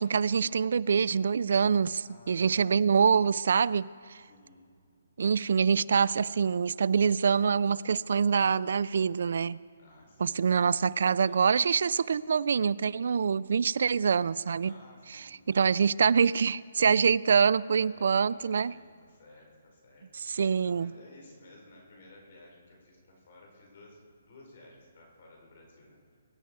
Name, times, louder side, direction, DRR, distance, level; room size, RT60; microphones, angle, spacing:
voice 1, 0.0-4.2 5.2-9.6 10.2-14.7 15.1-18.7 20.1-20.9, right 6 dB, 60° right, 20 dB, 0.3 m, -25 dB
voice 2, 2.0-3.4 4.2-4.7 5.5-5.7 9.8-11.5 14.6-15.4 17.8-26.2, left 2 dB, 45° left, -1 dB, 4.8 m, -56 dB
23.0 x 10.5 x 4.7 m, 2.1 s
hypercardioid pair, 170°, 0 cm